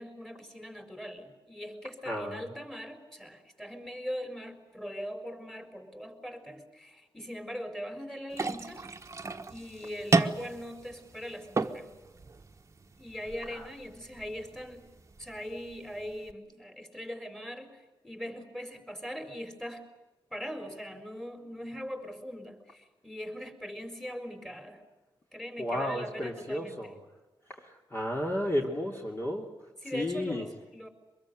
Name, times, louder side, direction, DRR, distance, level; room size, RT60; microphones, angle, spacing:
voice 1, 0.0-8.9 9.5-11.9 13.0-14.8 15.2-19.8 20.3-24.8 25.3-26.9 29.8-30.9, equal, 5° left, 7 dB, 4.4 m, -41 dB
voice 2, 2.1-2.4 13.5-13.7 25.6-26.9 27.6-29.6 29.9-30.4, left 1 dB, 25° left, 0 dB, 3.0 m, -33 dB
sound 1, 8.3-16.3, right 3 dB, 35° right, 1.4 m, -34 dB
24.0 x 22.0 x 9.2 m, 1.1 s
wide cardioid pair, 120°, 9 cm